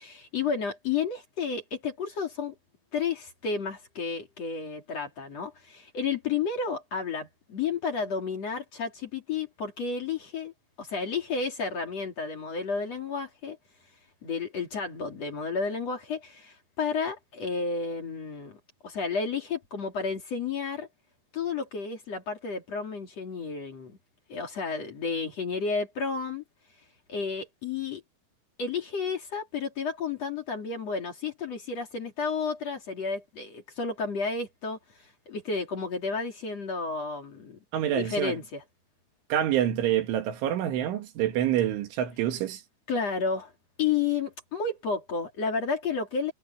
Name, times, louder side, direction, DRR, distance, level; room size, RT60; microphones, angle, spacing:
voice 1, 0.0-2.5 2.9-10.5 10.8-13.6 14.2-20.9 21.3-24.0 24.3-26.4 27.1-28.0 28.6-34.8 35.3-38.6 42.9-43.5 43.8-46.3, left 5 dB, 40° left, 3.4 m, -31 dB
voice 2, 37.7-38.4 39.3-42.6, right 11 dB, 90° right, 4.4 m, -27 dB
omnidirectional pair, 5.3 m